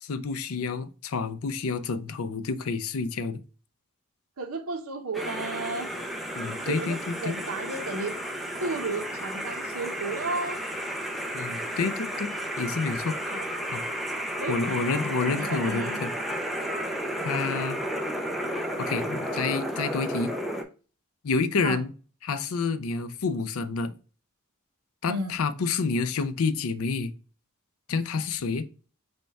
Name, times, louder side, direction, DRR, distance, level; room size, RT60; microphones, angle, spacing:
voice 1, 0.0-3.4 6.3-7.4 11.3-13.1 13.7-13.8 14.5-16.1 17.2-17.8 18.8-20.3 21.2-21.9 22.2-23.9 25.0-27.1 27.9-28.7, left 4 dB, 70° left, 0.5 m, -29 dB
voice 2, 4.4-5.9 6.7-7.0 7.2-8.2 8.6-10.6 13.3-13.5 14.4-14.6 14.9-16.0 17.2-17.4 21.6-21.8 25.1-25.4, right 3 dB, 70° right, 0.8 m, -33 dB
sound 1, 5.1-20.6, equal, ahead, 0.5 m, -32 dB
5.2 x 2.2 x 4.5 m
head